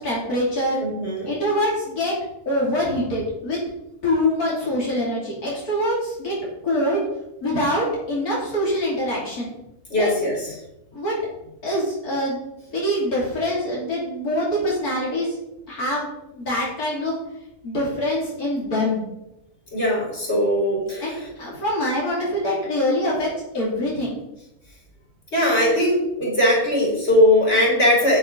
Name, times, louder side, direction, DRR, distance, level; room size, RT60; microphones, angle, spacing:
voice 1, 0.0-0.8 1.2-2.2 2.5-3.6 4.0-6.4 6.6-7.0 7.4-9.5 10.0-10.1 10.9-11.2 11.6-12.4 12.7-15.4 15.7-17.2 17.6-19.1 21.0-24.2, left 1 dB, 90° left, -5 dB, 3.3 m, -24 dB
voice 2, 0.8-1.3 9.9-10.6 19.7-21.3 25.3-28.2, left 1 dB, 50° left, -5 dB, 4.8 m, -20 dB
10.5 x 9.5 x 3.9 m, 0.87 s
omnidirectional pair, 1.5 m